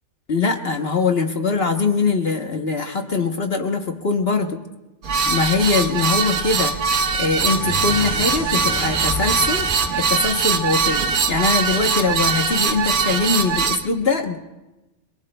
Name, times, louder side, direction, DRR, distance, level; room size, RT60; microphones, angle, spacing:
voice 1, 0.3-4.6 5.3-6.7 7.2-9.7 9.9-11.0 11.3-14.4, left 4 dB, 45° left, 4 dB, 1.1 m, -22 dB
sound 1, 5.0-13.8, right 5 dB, 85° right, 1.4 m, -21 dB
sound 2, 7.2-11.7, left 1 dB, 25° left, 2.6 m, -32 dB
29.0 x 22.0 x 2.2 m, 1.1 s
omnidirectional pair, 1.5 m